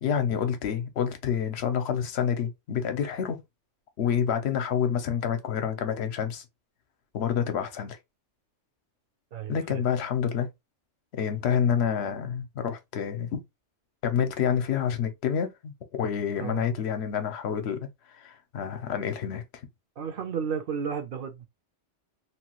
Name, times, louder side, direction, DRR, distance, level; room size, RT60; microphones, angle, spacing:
voice 1, 0.0-3.4 4.0-6.4 7.1-8.0 9.5-10.5 11.1-13.4 14.0-17.9 18.1-19.4, left 8 dB, 65° left, 0.9 m, -28 dB
voice 2, 9.3-9.8 16.4-16.7 20.0-21.5, right 7 dB, 60° right, 0.7 m, -33 dB
3.0 x 2.2 x 2.9 m
omnidirectional pair, 1.2 m